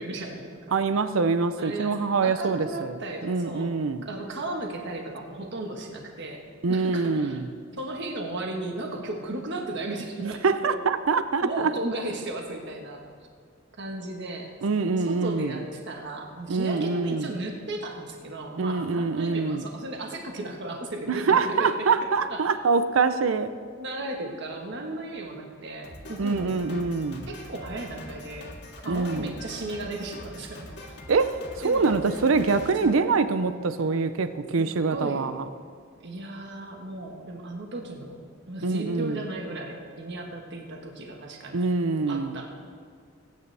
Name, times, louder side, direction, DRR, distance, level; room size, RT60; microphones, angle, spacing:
voice 1, 0.0-0.7 1.6-3.7 4.0-6.4 6.7-7.4 7.8-10.4 11.4-13.0 13.8-22.4 23.8-26.5 27.3-28.5 28.8-31.0 31.6-31.9 32.8-33.1 34.6-35.2 36.0-38.2 38.5-41.7 42.1-42.5, right 2 dB, 60° right, 1 dB, 1.4 m, -35 dB
voice 2, 0.7-4.0 6.6-7.5 10.2-11.7 14.6-15.5 16.5-17.3 18.6-19.7 21.1-23.5 26.2-27.3 28.9-29.3 31.1-35.4 38.6-39.2 41.5-42.4, right 4 dB, 85° right, 11 dB, 0.6 m, -25 dB
Drum kit, 25.8-33.6, left 1 dB, 60° left, 2.0 m, -44 dB
22.0 x 9.5 x 3.4 m, 2.1 s
head